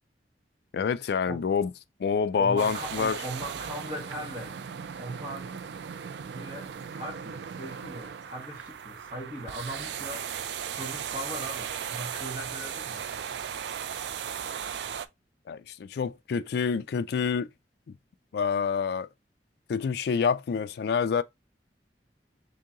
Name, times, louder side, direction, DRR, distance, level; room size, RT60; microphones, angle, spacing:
voice 1, 0.7-1.7 2.0-3.2 15.5-17.5 18.3-19.1 19.7-21.2, left 6 dB, 65° left, 0.3 m, -27 dB
voice 2, 2.4-4.6 5.0-5.6 6.3-10.3 10.8-13.1, equal, 35° right, 1.4 m, -39 dB
sound 1, 2.6-15.1, right 8 dB, 70° right, 0.4 m, -37 dB
3.7 x 2.9 x 3.6 m
head